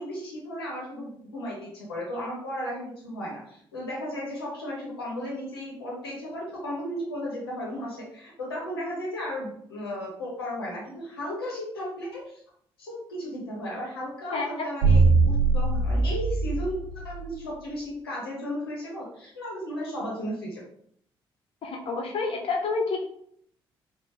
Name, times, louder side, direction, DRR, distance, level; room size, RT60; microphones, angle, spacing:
voice 1, 0.0-12.4 12.8-20.6, equal, 85° left, -3 dB, 0.8 m, -35 dB
voice 2, 14.3-14.6 21.6-23.0, left 4 dB, 50° left, 1 dB, 0.8 m, -29 dB
sound 1, 14.8-17.2, right 4 dB, 75° right, 0.6 m, -22 dB
4.0 x 2.1 x 3.2 m, 0.66 s
figure-of-eight pair, 40°, 12 cm